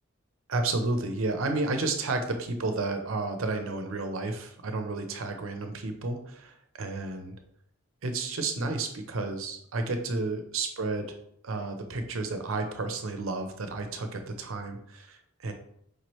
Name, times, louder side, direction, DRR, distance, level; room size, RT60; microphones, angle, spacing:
voice 1, 0.5-7.3 8.0-11.1 11.4-15.5, right 3 dB, 80° right, 6 dB, 0.6 m, -31 dB
4.8 x 3.0 x 3.1 m, 0.71 s
head